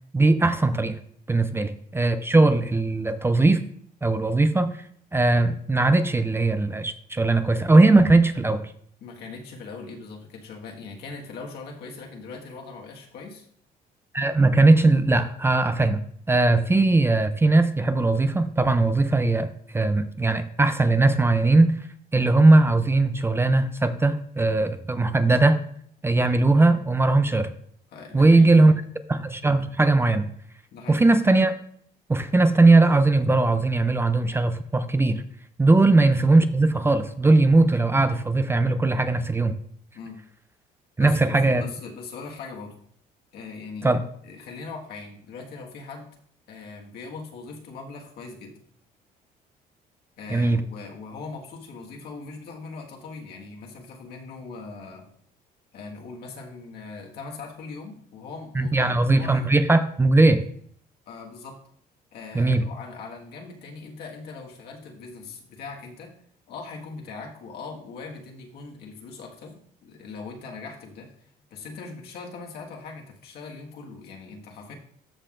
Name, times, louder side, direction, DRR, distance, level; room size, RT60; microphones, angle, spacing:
voice 1, 0.1-1.0 1.3-3.6 4.0-4.7 5.1-8.6 14.1-16.0 16.3-21.8 22.1-25.6 26.0-27.5 28.1-28.7 29.1-30.3 30.9-31.5 32.1-35.2 35.6-39.5 41.0-41.6 43.8-44.0 50.3-50.6 58.5-60.4 62.3-62.7, right 2 dB, 15° right, 10 dB, 0.5 m, -19 dB
voice 2, 9.0-13.4 27.9-28.8 30.7-31.0 35.7-35.8 39.9-40.2 41.0-42.8 43.3-43.9 44.2-46.1 46.5-48.6 50.2-55.0 55.7-59.5 61.1-61.6 62.1-66.1 66.5-74.7, left 4 dB, 70° left, 0 dB, 1.7 m, -40 dB
13.0 x 5.6 x 2.5 m, 0.63 s
cardioid pair, 110°, 17 cm